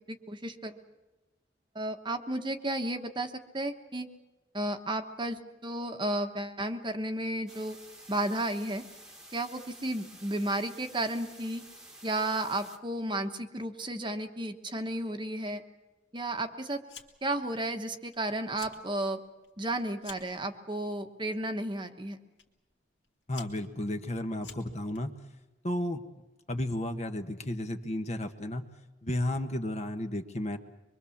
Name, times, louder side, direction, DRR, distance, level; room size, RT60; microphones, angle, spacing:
voice 1, 0.1-0.8 1.7-4.1 4.5-7.8 8.1-8.8 9.3-11.6 12.0-15.6 16.1-16.8 17.2-19.2 19.6-22.2, right 1 dB, 25° right, 6 dB, 1.2 m, -33 dB
sound 1, 7.5-12.8, right 1 dB, 5° right, 1.5 m, -51 dB
Fire, 16.9-17.4 17.7-18.2 18.4-18.8 19.2-20.4 21.2-21.5 22.4-22.5 23.0-25.0, left 7 dB, 65° left, 2.6 m, -49 dB
voice 2, 23.3-25.1 25.6-26.0 26.5-28.6 29.0-30.6, left 1 dB, 35° left, 7 dB, 1.3 m, -33 dB
24.5 x 23.0 x 7.2 m, 1.1 s
head